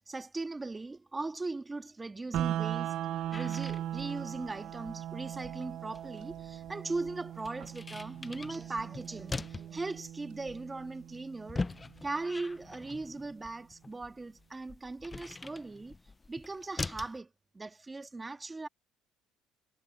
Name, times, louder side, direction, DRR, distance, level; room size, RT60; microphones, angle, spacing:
voice 1, 0.1-11.7 12.0-15.9 16.3-18.7, right 3 dB, 20° right, 1.6 m, -39 dB
sound 1, 2.3-12.3, right 11 dB, 65° right, 0.6 m, -39 dB
sound 2, 3.3-17.2, left 3 dB, 20° left, 0.4 m, -43 dB
cardioid pair, 95°, 0 cm